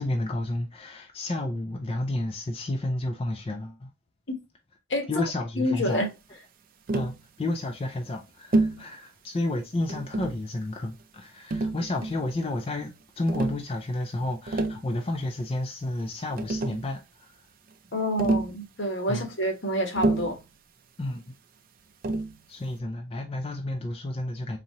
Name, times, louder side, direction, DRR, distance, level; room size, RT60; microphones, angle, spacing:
voice 1, 0.0-3.9 5.1-6.0 6.9-17.3 19.1-19.3 21.0-21.3 22.5-24.6, left 1 dB, 30° left, 0.4 m, -31 dB
voice 2, 4.9-5.2 5.6-6.1 17.9-20.3, equal, 70° left, 1.2 m, -27 dB
Tap, 6.9-7.2 8.5-8.8 9.9-10.4 11.5-12.3 13.3-13.6 14.3-14.8 16.0-16.1 16.4-16.9 18.2-18.6 20.0-20.4 22.0-22.4, right 2 dB, 50° right, 0.4 m, -27 dB
4.0 x 2.8 x 2.9 m
head